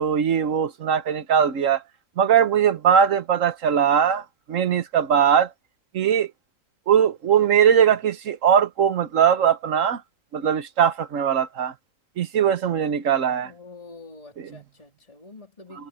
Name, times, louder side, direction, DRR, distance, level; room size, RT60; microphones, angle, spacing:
voice 1, 0.0-1.8 2.2-5.5 5.9-6.3 6.9-10.0 10.3-11.7 12.2-13.5, right 8 dB, 65° right, 1.4 m, -20 dB
voice 2, 13.4-15.9, left 3 dB, 25° left, 4.0 m, -46 dB
omnidirectional pair, 1.5 m